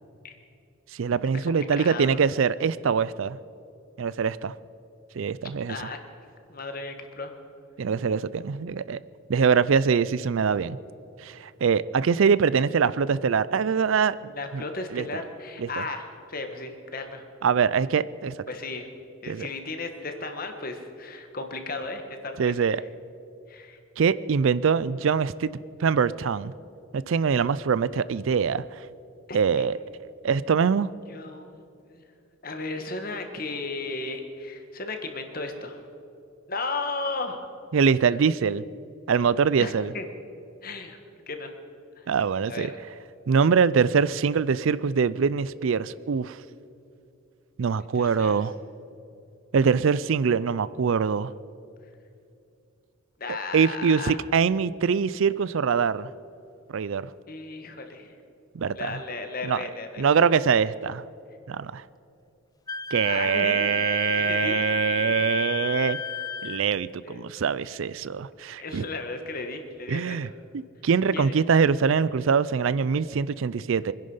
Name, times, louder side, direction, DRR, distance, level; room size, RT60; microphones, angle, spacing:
voice 1, 0.9-3.4 4.0-4.5 5.2-5.8 7.8-9.0 9.3-10.8 11.2-14.2 14.5-14.6 14.9-15.1 15.6-15.7 17.4-18.3 19.3-19.5 22.4-22.8 24.0-25.5 25.8-26.5 26.9-28.8 29.3-29.8 30.2-30.9 37.7-38.6 39.1-39.9 42.1-42.7 43.3-46.4 47.6-48.5 49.5-51.3 53.5-56.1 56.7-57.1 58.5-59.0 59.4-59.6 60.0-61.0 61.5-61.8 62.9-66.0 66.4-68.8 69.9-70.3 70.5-73.9, right 6 dB, 65° right, 17 dB, 0.4 m, -23 dB
voice 2, 1.8-2.2 5.7-6.0 6.5-7.4 14.3-17.2 18.5-18.9 19.2-22.5 23.5-23.8 29.3-29.7 31.1-32.0 32.4-35.8 36.5-37.4 39.6-40.0 40.6-41.0 41.3-41.6 42.0-42.1 42.5-42.8 47.9-48.4 53.2-54.2 57.3-58.1 58.7-60.1 63.0-63.7 64.1-64.6 65.0-65.3 67.0-67.3 68.6-70.2 71.1-71.4, left 3 dB, 40° left, 5 dB, 1.5 m, -35 dB
Wind instrument woodwind instrument, 62.7-66.6, left 4 dB, 15° left, 0.5 m, -31 dB
24.5 x 10.5 x 5.6 m, 2.6 s
head